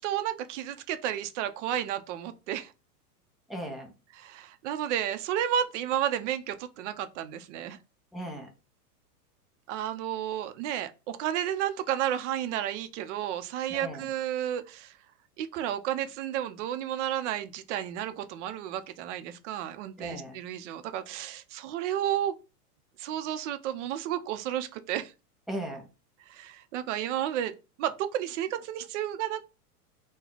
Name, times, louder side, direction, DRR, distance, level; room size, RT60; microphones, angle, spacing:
voice 1, 0.0-2.7 4.2-7.8 9.7-14.9 15.4-22.3 23.0-25.1 26.3-27.5 27.8-29.4, right 11 dB, 50° right, 0.7 m, -32 dB
voice 2, 3.5-3.9 8.1-8.5 13.7-14.1 20.0-20.4 25.5-25.9, right 1 dB, ahead, 0.5 m, -37 dB
4.0 x 2.3 x 4.5 m
hypercardioid pair, 130°, 47 cm